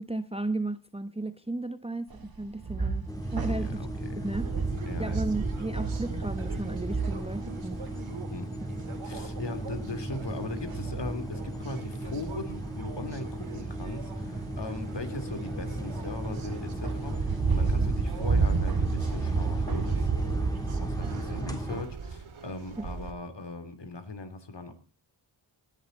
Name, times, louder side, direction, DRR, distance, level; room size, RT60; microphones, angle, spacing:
voice 1, 0.0-3.8 4.2-4.5 5.0-7.9 8.6-8.7 17.8-17.9 22.8-22.9, right 2 dB, 10° right, 1.0 m, -34 dB
sound 1, 2.1-20.4, right 4 dB, 45° right, 2.3 m, -39 dB
sound 2, 3.1-21.8, right 1 dB, 5° left, 3.5 m, -37 dB
voice 2, 3.5-4.3 4.9-5.4 8.3-8.5 9.0-20.1 20.6-24.7, left 3 dB, 55° left, 3.3 m, -39 dB
sound 3, 4.3-23.1, right 4 dB, 75° right, 2.1 m, -33 dB
19.5 x 11.0 x 4.1 m
wide cardioid pair, 75°, 49 cm